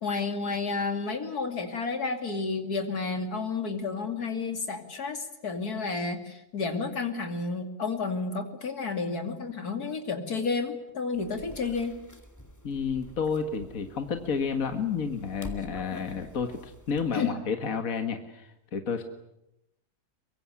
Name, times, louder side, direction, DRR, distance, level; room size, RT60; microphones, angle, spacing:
voice 1, 0.0-11.9 17.1-17.3, left 4 dB, 90° left, 6 dB, 3.1 m, -31 dB
sound 1, 11.1-17.1, left 1 dB, 10° left, 2.1 m, -47 dB
voice 2, 12.6-19.0, left 6 dB, 65° left, 6 dB, 2.1 m, -31 dB
23.5 x 23.5 x 9.9 m, 0.85 s
omnidirectional pair, 1.6 m